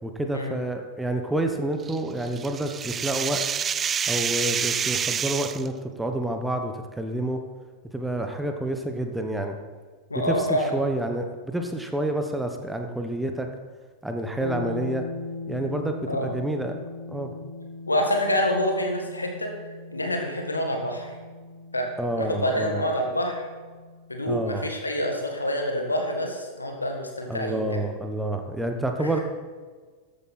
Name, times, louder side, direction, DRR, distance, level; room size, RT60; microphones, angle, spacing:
voice 1, 0.0-3.4 4.1-7.4 7.9-9.6 10.1-13.5 14.0-15.0 15.5-16.8 17.1-17.3 22.0-22.8 24.3-24.7 27.3-29.2, right 1 dB, 5° right, 5 dB, 1.2 m, -28 dB
sound 1, 1.9-5.7, right 7 dB, 25° right, 0.4 m, -28 dB
voice 2, 10.1-10.8 16.1-16.3 17.9-19.5 19.9-21.1 21.7-21.9 22.2-23.4 24.1-27.8 29.0-29.2, left 1 dB, 80° left, 2 dB, 1.9 m, -27 dB
sound 2, 14.4-24.2, left 3 dB, 80° right, 3.5 m, -39 dB
14.0 x 8.9 x 4.4 m, 1.5 s
figure-of-eight pair, 90°, 0 cm